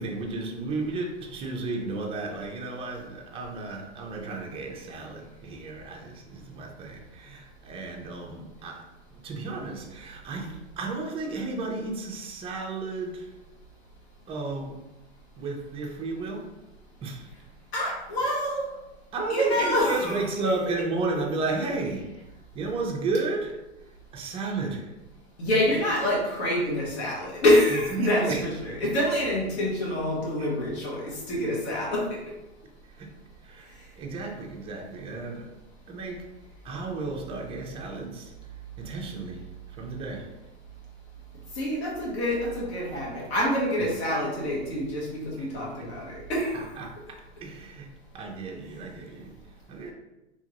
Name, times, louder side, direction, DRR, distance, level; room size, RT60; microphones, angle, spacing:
voice 1, 0.0-13.4 14.3-14.8 15.4-16.5 17.0-17.3 19.1-22.1 22.5-25.0 27.7-28.5 28.8-28.9 30.4-30.5 32.8-33.1 33.4-35.5 35.9-36.3 36.6-40.3 43.8-43.9 45.4-45.5 45.8-45.9 46.5-49.9, right 3 dB, 15° right, 2 dB, 0.4 m, -33 dB
voice 2, 17.7-18.8 19.3-20.2 25.4-32.2 41.5-46.5, left 1 dB, 70° left, -3 dB, 1.3 m, -26 dB
2.9 x 2.4 x 2.9 m, 0.98 s
hypercardioid pair, 110°, 34 cm